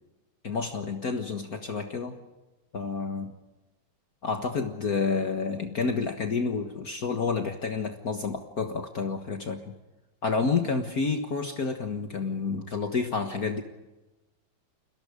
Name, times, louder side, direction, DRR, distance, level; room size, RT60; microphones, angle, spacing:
voice 1, 0.4-2.2 2.7-3.3 4.2-9.7 10.2-13.6, left 4 dB, 50° left, 5 dB, 1.9 m, -29 dB
30.0 x 23.0 x 5.1 m, 1.1 s
omnidirectional pair, 2.2 m